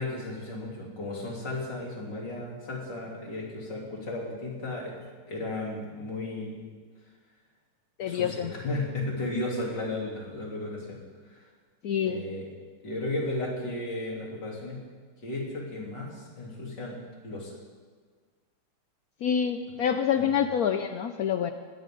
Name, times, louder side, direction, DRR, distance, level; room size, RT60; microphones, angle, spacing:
voice 1, 0.0-4.9 5.3-6.7 8.0-11.0 11.3-11.4 12.0-12.5 12.8-14.8 15.2-17.5 20.2-20.3, left 2 dB, 55° left, -3 dB, 4.1 m, -34 dB
voice 2, 8.0-8.5 11.8-12.2 19.2-21.5, left 8 dB, 85° left, 8 dB, 0.8 m, -27 dB
20.5 x 17.0 x 3.9 m, 1.5 s
omnidirectional pair, 2.4 m